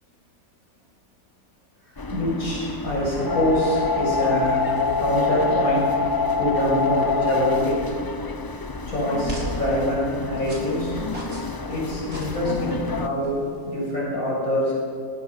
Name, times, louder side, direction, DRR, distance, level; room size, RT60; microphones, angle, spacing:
voice 1, 1.8-4.7 5.0-6.0 6.4-7.9 8.9-11.0 11.7-14.7, equal, 90° left, -4 dB, 7.1 m, -25 dB
sound 1, 2.0-13.1, left 4 dB, 35° left, 0.3 m, -27 dB
sound 2, 7.7-13.9, right 1 dB, 85° right, 4.8 m, -39 dB
24.5 x 19.0 x 5.7 m, 2.4 s
omnidirectional pair, 1.5 m